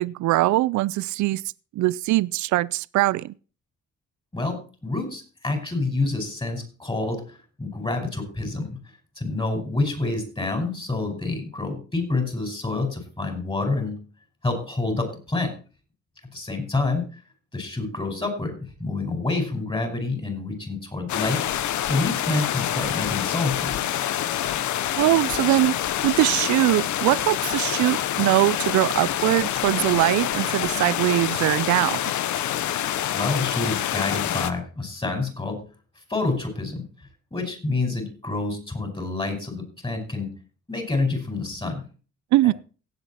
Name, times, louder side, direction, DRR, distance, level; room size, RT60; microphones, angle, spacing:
voice 1, 0.0-1.4 1.8-3.3 25.0-25.7 26.0-32.0 42.3-42.5, right 17 dB, 70° right, 0.5 m, -21 dB
voice 2, 4.3-8.8 9.2-14.0 14.4-15.5 16.3-17.1 17.5-23.8 33.1-35.6 36.1-36.9 37.3-40.3 40.7-41.8, left 3 dB, 15° left, 5.2 m, -28 dB
sound 1, 21.1-34.5, left 11 dB, 70° left, 0.9 m, -26 dB
17.0 x 8.0 x 4.3 m
cardioid pair, 90°, 30 cm